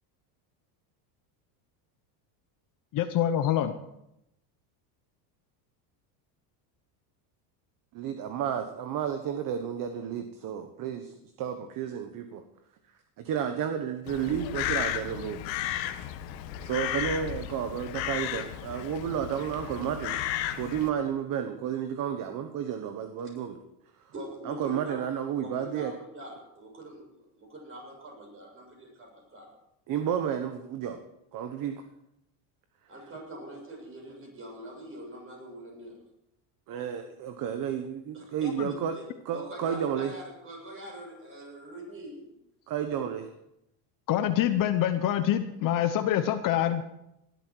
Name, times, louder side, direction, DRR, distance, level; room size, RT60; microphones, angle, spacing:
voice 1, 2.9-3.7 38.6-38.7 44.1-46.8, left 11 dB, 40° left, 9 dB, 0.9 m, -25 dB
voice 2, 7.9-12.4 13.2-15.4 16.6-20.2 20.6-23.6 24.4-25.9 29.9-31.0 31.3-31.8 36.7-38.9 39.2-40.1 42.7-43.3, right 8 dB, 40° right, 7 dB, 1.2 m, -32 dB
Crow, 14.1-20.9, left 12 dB, 85° left, 1.6 m, -34 dB
voice 3, 24.1-25.0 25.4-29.5 32.9-36.0 38.1-39.0 39.3-42.3, right 1 dB, 25° right, 1 dB, 7.0 m, -44 dB
19.5 x 12.5 x 4.7 m, 0.82 s
cardioid pair, 150°, 50 cm